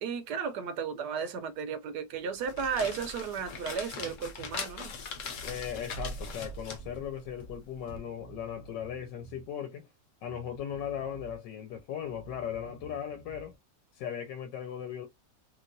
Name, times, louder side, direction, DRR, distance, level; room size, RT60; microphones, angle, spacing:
voice 1, 0.0-4.9, right 6 dB, 75° right, 1.1 m, -34 dB
sound 1, 2.3-8.0, left 3 dB, 55° left, 1.0 m, -41 dB
Bass guitar, 4.0-4.6 5.1-5.2 5.5-7.1 7.9-9.5 10.3-11.4 11.7-13.5, right 6 dB, 55° right, 0.9 m, -51 dB
voice 2, 5.4-9.9 10.2-13.5 13.9-15.1, left 9 dB, 85° left, 1.4 m, -38 dB
3.2 x 2.9 x 2.5 m
omnidirectional pair, 1.9 m